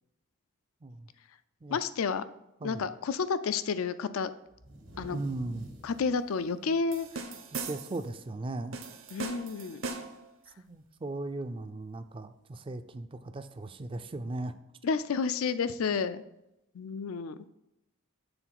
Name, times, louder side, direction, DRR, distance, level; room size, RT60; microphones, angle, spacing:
voice 1, 1.7-2.2 2.6-4.3 5.0-5.2 5.8-7.3 9.1-9.8 14.8-16.2 16.7-17.4, left 5 dB, 80° left, 13 dB, 0.4 m, -30 dB
sound 1, 4.5-8.2 8.6-8.7 9.1-9.5 10.7-10.8 11.8-11.9, right 1 dB, 85° right, 1.9 m, -51 dB
voice 2, 5.1-5.7 7.7-8.8 10.6-14.6, right 2 dB, 25° right, 10 dB, 0.4 m, -37 dB
sound 2, 6.9-8.1 8.7-10.3, right 4 dB, 65° right, 0.8 m, -39 dB
6.9 x 3.8 x 5.9 m, 0.90 s
head